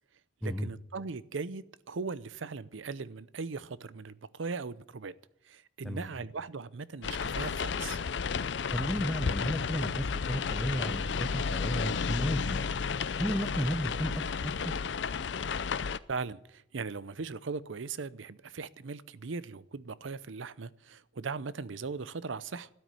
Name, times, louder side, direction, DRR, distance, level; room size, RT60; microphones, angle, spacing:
voice 1, 0.4-5.1 5.5-8.0 16.1-22.7, right 4 dB, 85° right, 0.7 m, -39 dB
sound 1, 7.0-16.0, left 5 dB, 65° left, 0.5 m, -32 dB
voice 2, 8.7-12.7 13.2-14.7, equal, ahead, 0.8 m, -33 dB
12.5 x 9.3 x 9.6 m
head